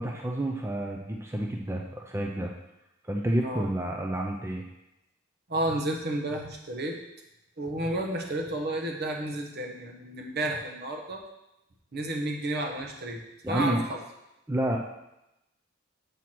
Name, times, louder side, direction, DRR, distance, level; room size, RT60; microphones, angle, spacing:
voice 1, 0.0-2.5 3.0-4.6 13.4-13.8 14.5-14.8, right 1 dB, 15° right, 0 dB, 0.5 m, -29 dB
voice 2, 5.5-7.0 7.6-11.2 11.9-14.0, right 1 dB, 55° right, 2 dB, 1.2 m, -31 dB
7.1 x 4.6 x 6.0 m, 0.90 s
head